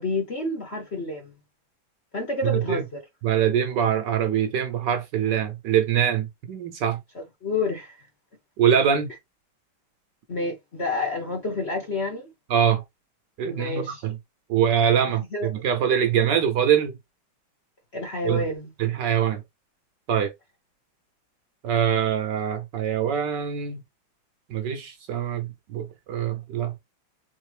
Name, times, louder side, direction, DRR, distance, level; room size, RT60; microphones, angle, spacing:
voice 1, 0.0-1.3 2.1-3.0 7.1-8.0 10.3-12.3 13.5-14.0 15.3-15.6 17.9-18.7, left 2 dB, 45° left, 0.9 m, -29 dB
voice 2, 2.4-2.8 3.2-7.0 8.6-9.1 12.5-12.8 13.4-14.2 14.5-17.0 18.2-18.4 18.8-19.4 20.1-20.3 21.6-23.8 24.5-26.8, right 8 dB, 65° right, 1.3 m, -23 dB
3.5 x 3.3 x 3.3 m
omnidirectional pair, 2.2 m